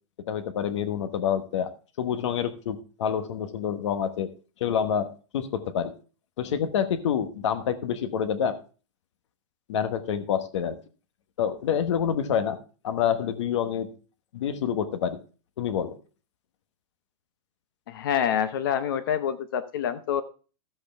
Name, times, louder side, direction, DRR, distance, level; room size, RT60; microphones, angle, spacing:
voice 1, 0.3-1.7 2.0-4.3 4.6-5.9 6.4-8.6 9.7-10.8 11.4-12.6 12.8-13.9 14.3-15.2 15.6-16.0, left 8 dB, 55° left, 10 dB, 1.2 m, -27 dB
voice 2, 17.9-20.2, left 9 dB, 40° left, 12 dB, 0.7 m, -27 dB
13.0 x 8.0 x 3.4 m, 0.36 s
supercardioid pair, 180°, 18 cm